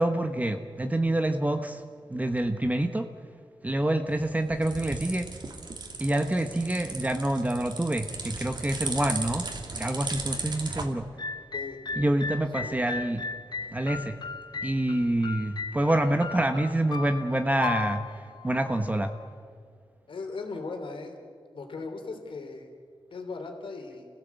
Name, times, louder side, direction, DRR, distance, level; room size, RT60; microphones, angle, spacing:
voice 1, 0.0-1.8 2.1-3.1 3.6-5.3 6.0-9.5 9.8-11.1 12.0-13.3 13.7-14.2 14.6-19.1, right 1 dB, 15° right, 6 dB, 1.1 m, -27 dB
sound 1, 4.1-10.9, right 3 dB, 55° right, 2.4 m, -37 dB
sound 2, 11.2-19.2, left 4 dB, 55° left, 1.0 m, -37 dB
voice 2, 11.5-12.1 12.5-12.8 20.1-21.2 21.5-22.7 23.1-24.1, left 3 dB, 80° left, 4 dB, 3.3 m, -38 dB
29.0 x 16.0 x 8.2 m, 2.2 s
wide cardioid pair, 105°, 9 cm